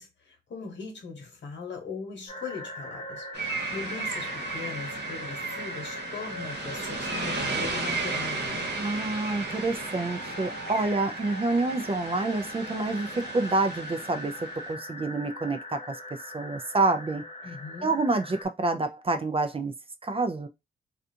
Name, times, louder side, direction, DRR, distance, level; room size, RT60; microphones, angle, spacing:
voice 1, 0.0-8.7 17.4-18.0, left 4 dB, 65° left, 1.2 m, -40 dB
sound 1, 2.3-18.5, left 1 dB, 30° left, 0.9 m, -41 dB
sound 2, 3.3-14.7, right 3 dB, 55° right, 1.0 m, -35 dB
voice 2, 8.8-14.3 14.7-16.0 16.3-17.2 17.8-19.7 20.0-20.5, right 3 dB, 30° right, 0.4 m, -28 dB
2.4 x 2.3 x 2.7 m
cardioid pair, 65°, 20 cm